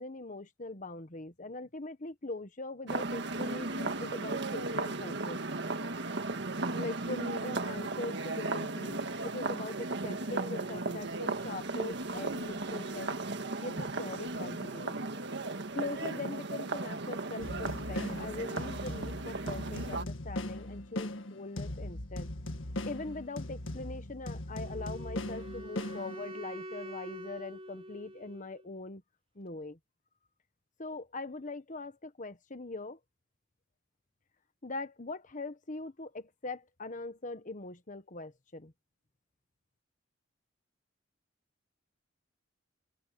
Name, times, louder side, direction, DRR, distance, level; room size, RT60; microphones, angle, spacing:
voice 1, 0.0-5.4 6.7-13.2 13.6-15.0 15.7-22.3 22.8-29.0 29.3-29.8 30.8-33.0 34.6-38.7, left 2 dB, 40° left, 1.4 m, -41 dB
sound 1, 2.9-20.0, right 2 dB, 65° right, 1.8 m, -36 dB
sound 2, 17.4-26.5, left 1 dB, 80° left, 1.8 m, -39 dB
Wind instrument woodwind instrument, 24.6-28.7, right 1 dB, 30° right, 3.5 m, -45 dB
open air
head